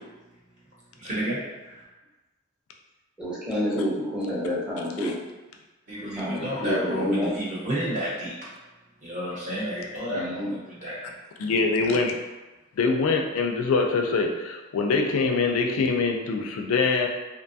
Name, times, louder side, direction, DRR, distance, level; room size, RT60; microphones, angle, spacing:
voice 1, 1.0-1.4 1.6-1.8 5.9-8.4 9.0-11.0, equal, 35° right, -8 dB, 0.9 m, -31 dB
voice 2, 3.2-5.1 6.2-7.3 10.1-10.5, left 1 dB, 5° right, -8 dB, 0.7 m, -28 dB
voice 3, 11.4-12.2 12.8-17.1, left 4 dB, 90° left, 3 dB, 0.4 m, -24 dB
2.6 x 2.2 x 2.6 m, 1.1 s
head